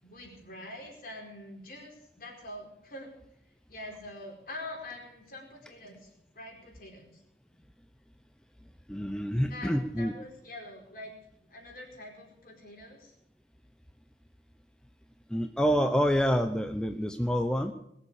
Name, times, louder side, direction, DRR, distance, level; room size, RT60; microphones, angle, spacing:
voice 1, 0.0-3.1 3.7-6.1 6.3-7.2 9.5-11.1 11.5-13.1, left 1 dB, 55° left, 0 dB, 4.8 m, -45 dB
voice 2, 8.9-10.1 15.3-17.7, equal, 5° left, 7 dB, 0.6 m, -27 dB
21.5 x 7.2 x 8.5 m, 0.77 s
head